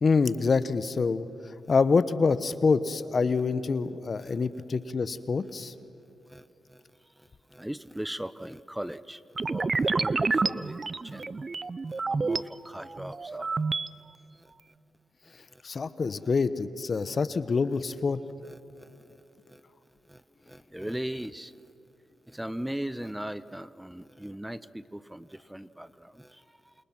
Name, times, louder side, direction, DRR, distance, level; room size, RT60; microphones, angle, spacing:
voice 1, 0.0-1.3 1.7-5.7 15.6-18.2, left 4 dB, 50° left, 14 dB, 1.0 m, -26 dB
voice 2, 6.3-6.8 7.2-11.5 11.9-13.6 14.4-14.5 15.2-15.6 18.4-19.6 20.1-21.5 22.3-26.7, right 1 dB, 5° right, 16 dB, 0.8 m, -39 dB
sound 1, 9.4-12.4 12.9-13.9, right 4 dB, 40° right, 0.6 m, -29 dB
28.0 x 28.0 x 6.1 m, 2.9 s
supercardioid pair, 50°, 0 cm